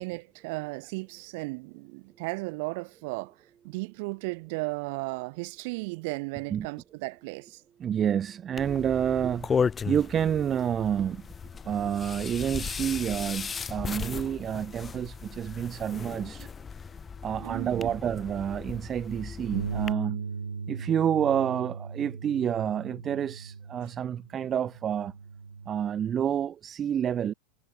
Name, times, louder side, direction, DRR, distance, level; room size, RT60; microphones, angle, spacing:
voice 1, 0.0-3.3 3.6-7.6 16.4-16.5 17.4-17.9, right 27 dB, 50° right, 4.2 m, -35 dB
voice 2, 7.8-11.3 11.6-16.5 17.2-20.3 20.7-25.1 25.7-27.3, right 9 dB, 25° right, 0.5 m, -29 dB
sound 1, 8.6-19.9, left 6 dB, 20° left, 1.9 m, -35 dB
Bass guitar, 19.5-25.8, right 5 dB, 75° right, 5.7 m, -38 dB
figure-of-eight pair, 90°, 0 cm